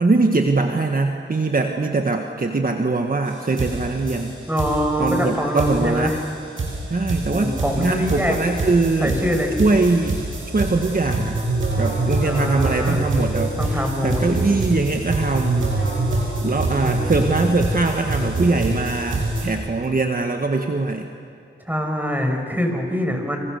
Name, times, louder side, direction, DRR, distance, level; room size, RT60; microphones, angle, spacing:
voice 1, 0.0-4.3 5.0-6.1 6.9-9.2 9.6-10.2 10.5-11.4 11.8-15.7 16.4-21.1, right 3 dB, 45° right, 4 dB, 1.7 m, -22 dB
sound 1, 3.3-3.4 3.6-19.5, right 2 dB, 80° right, 6.8 m, -25 dB
voice 2, 4.5-6.2 7.2-8.3 9.0-9.6 12.2-13.0 13.3-14.2 16.8-17.2 21.7-23.4, equal, 10° right, 3 dB, 6.1 m, -24 dB
28.5 x 26.5 x 6.7 m, 2.3 s
cardioid pair, 55°, 20 cm